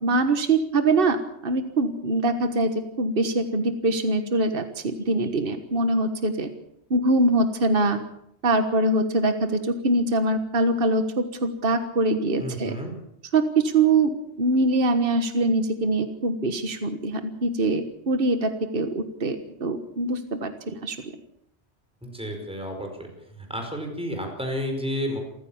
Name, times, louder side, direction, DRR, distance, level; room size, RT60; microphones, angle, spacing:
voice 1, 0.0-1.2 1.4-6.5 6.9-8.0 8.4-12.8 13.3-21.1, right 2 dB, 55° right, 8 dB, 1.7 m, -23 dB
voice 2, 12.4-12.9 22.0-23.1 23.5-25.2, equal, 5° right, 3 dB, 4.8 m, -31 dB
27.5 x 14.5 x 7.2 m, 0.75 s
omnidirectional pair, 1.1 m